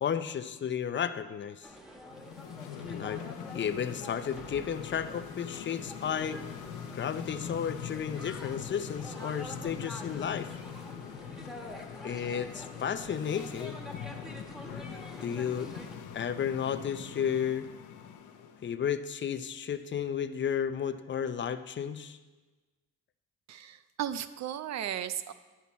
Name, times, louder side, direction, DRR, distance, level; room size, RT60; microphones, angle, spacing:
voice 1, 0.0-1.7 2.9-3.2 3.5-6.4 6.9-10.5 12.0-13.8 15.2-15.7 16.1-17.7 18.6-22.2, left 8 dB, 40° left, 11 dB, 0.5 m, -33 dB
sound 1, 1.6-16.0, left 1 dB, ahead, 1.3 m, -47 dB
sound 2, 2.1-18.7, left 8 dB, 85° left, 0.8 m, -43 dB
voice 2, 23.5-25.3, right 10 dB, 65° right, 13 dB, 0.5 m, -35 dB
11.5 x 5.7 x 4.2 m, 1.3 s
cardioid pair, 90°, 30 cm